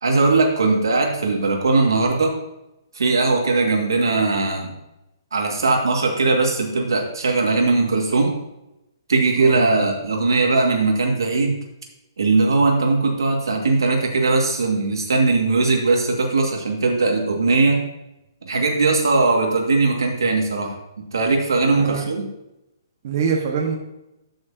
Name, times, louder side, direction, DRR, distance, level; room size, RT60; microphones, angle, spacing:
voice 1, 0.0-2.3 2.9-4.7 5.3-8.4 9.1-11.6 12.2-17.8 18.4-20.8 21.1-22.2, right 3 dB, 90° right, 1 dB, 2.0 m, -19 dB
voice 2, 9.4-9.8 21.8-22.0 23.0-23.8, right 6 dB, 50° right, 1 dB, 1.4 m, -24 dB
12.0 x 6.4 x 2.8 m, 0.90 s
hypercardioid pair, 155°, 2 cm